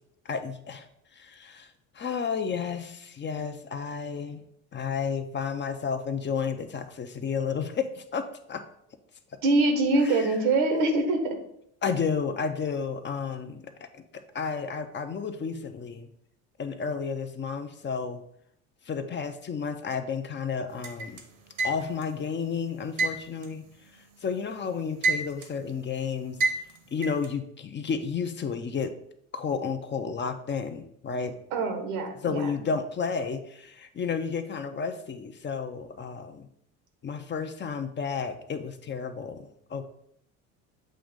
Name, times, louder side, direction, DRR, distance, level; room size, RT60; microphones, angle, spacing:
voice 1, 0.2-0.9 1.1-4.4 4.7-8.6 10.0-10.3 10.7-11.1 11.8-14.0 14.3-16.1 16.6-18.2 18.9-21.2 21.6-23.7 23.9-26.4 26.9-28.9 29.3-31.4 32.2-36.5 37.0-39.9, left 6 dB, 30° left, 8 dB, 0.7 m, -32 dB
voice 2, 9.4-11.2 31.5-32.5, right 2 dB, 80° right, 5 dB, 1.4 m, -24 dB
sound 1, 20.8-22.1 23.0-24.4 24.7-25.6 26.4-27.3, right 3 dB, 65° right, 1.2 m, -28 dB
7.7 x 2.6 x 5.2 m, 0.71 s
supercardioid pair, 85°, 37 cm